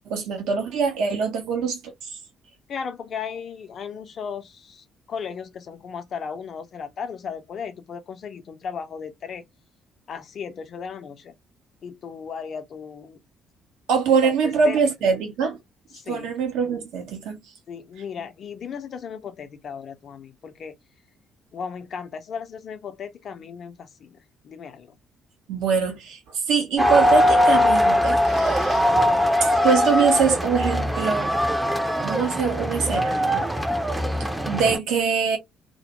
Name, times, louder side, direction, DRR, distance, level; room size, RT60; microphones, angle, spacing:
voice 1, 0.1-2.2 13.9-15.6 16.1-17.4 25.5-28.9 29.4-31.4 32.0-33.4 34.5-35.4, right 5 dB, 60° right, 0.6 m, -23 dB
voice 2, 2.7-9.4 10.1-11.3 11.8-13.2 14.2-14.8 15.9-16.3 17.7-20.7 21.5-24.2 24.4-24.9, left 6 dB, 50° left, 0.5 m, -36 dB
sound 1, 26.8-34.8, equal, 5° right, 0.5 m, -21 dB
2.1 x 2.0 x 2.9 m
figure-of-eight pair, 45°, 0 cm